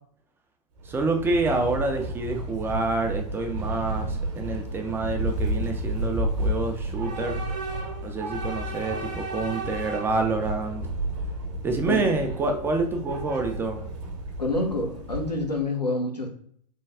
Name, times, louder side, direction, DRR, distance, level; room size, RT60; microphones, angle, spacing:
voice 1, 0.8-7.4 8.0-10.8 11.6-13.8, right 3 dB, 10° right, 4 dB, 0.3 m, -27 dB
Train / Subway metro underground, 0.8-15.6, right 1 dB, 50° right, 0.8 m, -32 dB
voice 2, 14.4-16.3, left 2 dB, 90° left, 1 dB, 0.9 m, -27 dB
3.3 x 2.2 x 3.5 m, 0.62 s
figure-of-eight pair, 100°, 20 cm